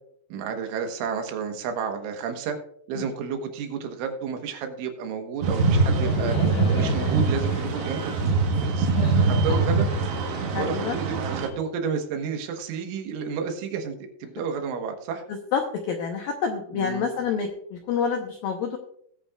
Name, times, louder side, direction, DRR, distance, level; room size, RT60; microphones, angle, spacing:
voice 1, 0.3-2.6 2.9-8.2 8.6-10.3 10.5-15.2 16.7-17.1, right 6 dB, 85° right, 5 dB, 3.8 m, -31 dB
sound 1, 5.4-11.5, right 4 dB, 70° right, 3.4 m, -23 dB
Laughter, 5.5-11.3, left 2 dB, 40° left, 2.7 m, -36 dB
voice 2, 10.5-11.0 15.5-15.6 15.9-18.8, left 6 dB, 80° left, 3 dB, 2.0 m, -27 dB
20.0 x 8.4 x 2.4 m, 0.69 s
omnidirectional pair, 5.4 m